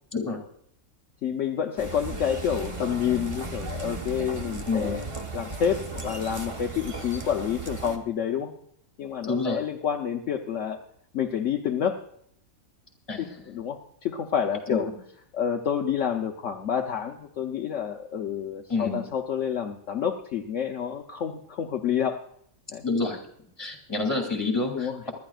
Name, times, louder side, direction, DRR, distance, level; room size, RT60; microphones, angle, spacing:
voice 1, 1.2-5.1 5.3-8.5 9.0-10.8 11.1-12.0 13.2-14.9 15.3-22.2 22.7-22.8 24.7-25.0, left 8 dB, 65° left, 2 dB, 1.1 m, -28 dB
sound 1, 1.8-8.0, right 2 dB, 25° right, 1.0 m, -36 dB
voice 2, 9.3-9.6 13.1-13.5 14.7-14.9 18.7-19.0 22.8-23.2 23.6-25.1, left 3 dB, 15° left, 1 dB, 2.5 m, -28 dB
24.5 x 12.0 x 2.4 m, 0.68 s
omnidirectional pair, 1.5 m